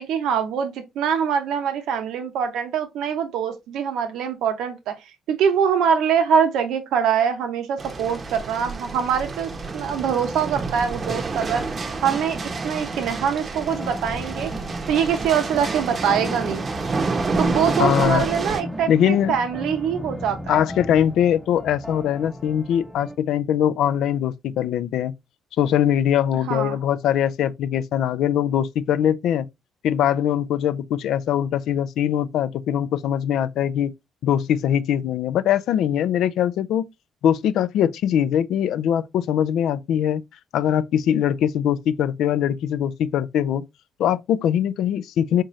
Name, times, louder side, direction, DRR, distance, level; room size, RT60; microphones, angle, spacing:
voice 1, 0.0-5.0 5.3-11.7 12.0-12.4 12.6-14.5 14.9-16.6 17.4-20.6 26.5-26.7, right 7 dB, 80° right, 0.7 m, -23 dB
sound 1, 7.8-18.6, right 3 dB, 40° right, 0.7 m, -28 dB
sound 2, 13.6-23.2, left 1 dB, ahead, 0.7 m, -37 dB
voice 2, 17.8-18.3 18.9-19.3 20.5-25.1 25.6-29.5 29.8-33.9 34.2-36.9 37.2-40.2 40.5-43.7 44.0-45.4, left 10 dB, 75° left, 0.3 m, -22 dB
3.6 x 2.7 x 3.0 m
cardioid pair, 80°, 0 cm